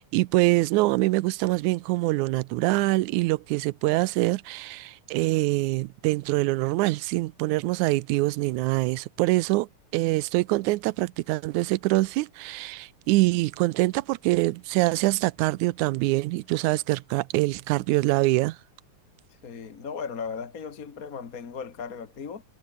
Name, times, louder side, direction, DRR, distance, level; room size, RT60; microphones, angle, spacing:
voice 1, 0.0-18.6, right 20 dB, 80° right, 1.8 m, -24 dB
voice 2, 19.4-22.4, left 6 dB, 40° left, 1.3 m, -36 dB
omnidirectional pair, 3.8 m